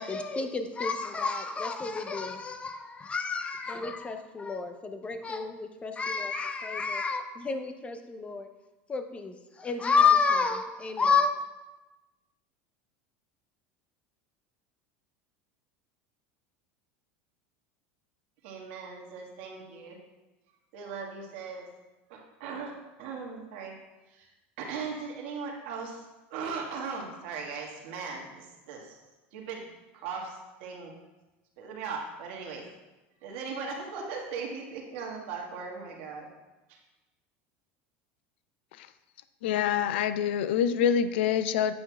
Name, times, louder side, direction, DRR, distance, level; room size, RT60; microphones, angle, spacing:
voice 1, 0.0-8.5 8.9-11.3, left 5 dB, 20° left, 7 dB, 0.6 m, -29 dB
voice 2, 18.4-20.0 20.7-21.7 22.1-23.7 24.1-24.3 24.6-26.0 26.3-29.0 29.3-29.7 29.9-30.9 31.6-32.6 33.2-36.3 36.7-36.8, right 5 dB, 70° right, -1 dB, 1.5 m, -38 dB
voice 3, 39.4-41.7, left 8 dB, 80° left, 13 dB, 0.4 m, -26 dB
8.6 x 5.8 x 2.3 m, 1.1 s
supercardioid pair, 105°, 6 cm